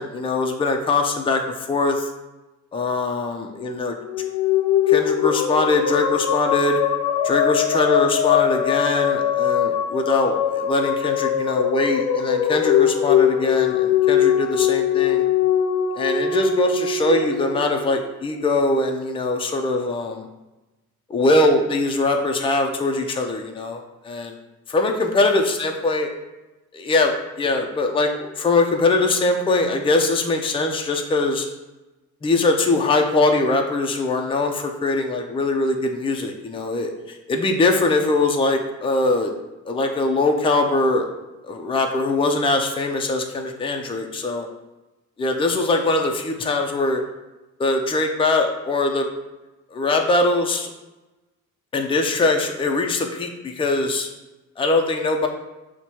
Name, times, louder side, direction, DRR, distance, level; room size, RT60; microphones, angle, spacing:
voice 1, 0.0-2.1 2.7-3.9 4.9-6.8 7.2-15.2 16.0-20.3 21.1-24.3 24.7-26.1 26.7-31.5 32.2-39.3 39.7-41.0 41.4-44.5 45.2-47.0 47.6-49.1 49.7-50.7 51.7-54.1 54.6-55.3, left 2 dB, 20° left, 3 dB, 0.4 m, -22 dB
sound 1, 4.0-18.5, left 9 dB, 75° left, 0.5 m, -21 dB
5.9 x 2.2 x 2.8 m, 1.0 s
cardioid pair, 90°, 30 cm